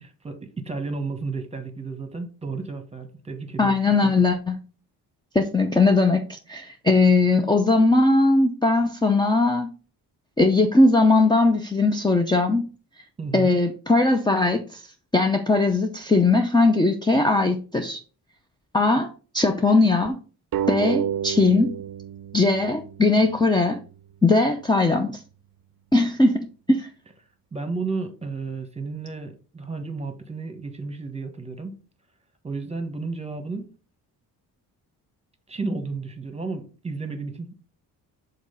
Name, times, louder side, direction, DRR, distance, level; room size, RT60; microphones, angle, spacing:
voice 1, 0.0-4.1 13.2-13.6 27.5-31.8 32.4-33.7 35.5-37.5, right 4 dB, 15° right, 1.3 m, -32 dB
voice 2, 3.6-4.6 5.3-9.7 10.4-12.7 13.3-14.8 15.1-18.0 18.7-20.2 20.7-21.7 22.3-23.8 24.2-25.2 25.9-26.9, left 3 dB, 10° left, 0.7 m, -19 dB
sound 1, 20.5-23.7, right 9 dB, 55° right, 0.6 m, -30 dB
5.1 x 4.1 x 5.2 m
cardioid pair, 80°, 40 cm